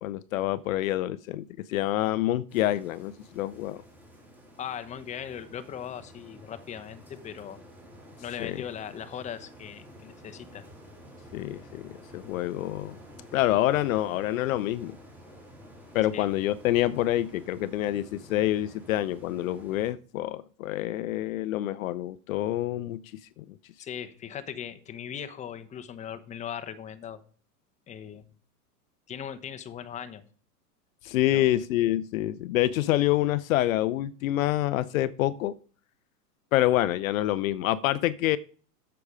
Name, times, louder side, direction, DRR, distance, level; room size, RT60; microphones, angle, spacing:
voice 1, 0.0-3.8 8.4-8.6 11.3-13.0 13.3-14.9 15.9-23.0 23.4-23.5 31.0-35.5 36.5-38.4, left 14 dB, 60° left, 0.6 m, -27 dB
sound 1, 2.5-19.9, equal, 5° right, 3.4 m, -50 dB
voice 2, 4.6-7.6 8.2-10.6 16.1-16.3 23.8-27.2 27.9-28.2 29.1-30.2 31.3-31.6, left 9 dB, 15° left, 0.8 m, -39 dB
8.3 x 7.0 x 4.9 m
hypercardioid pair, 130°, 47 cm